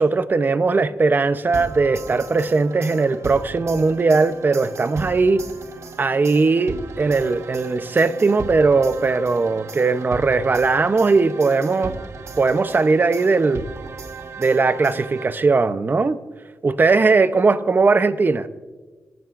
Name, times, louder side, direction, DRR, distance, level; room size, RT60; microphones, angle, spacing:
voice 1, 0.0-5.5 6.0-12.0 12.4-13.6 14.4-16.2 16.6-18.5, right 4 dB, 35° right, 12 dB, 0.7 m, -19 dB
sound 1, 1.5-15.7, right 4 dB, 60° right, 1.1 m, -37 dB
26.0 x 14.0 x 2.5 m, 1.3 s
wide cardioid pair, 100°, 5 cm